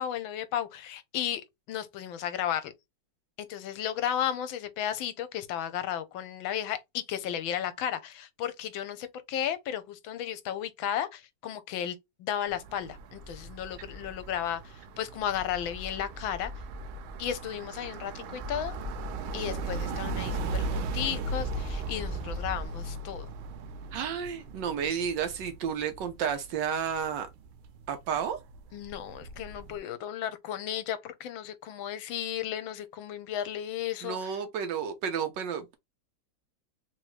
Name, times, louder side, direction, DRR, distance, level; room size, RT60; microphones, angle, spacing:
voice 1, 0.0-2.7 3.4-16.5 17.2-18.8 19.3-23.3 28.7-34.3, left 10 dB, 80° left, 1.4 m, -34 dB
sound 1, 12.5-29.8, right 3 dB, 85° right, 1.5 m, -39 dB
sound 2, 13.2-14.4 15.4-17.4 18.4-20.4 21.4-22.7, left 1 dB, 10° right, 1.5 m, -40 dB
voice 2, 23.9-27.3 27.9-28.4 34.0-35.7, right 7 dB, 70° right, 1.3 m, -31 dB
3.7 x 3.0 x 3.1 m
omnidirectional pair, 2.2 m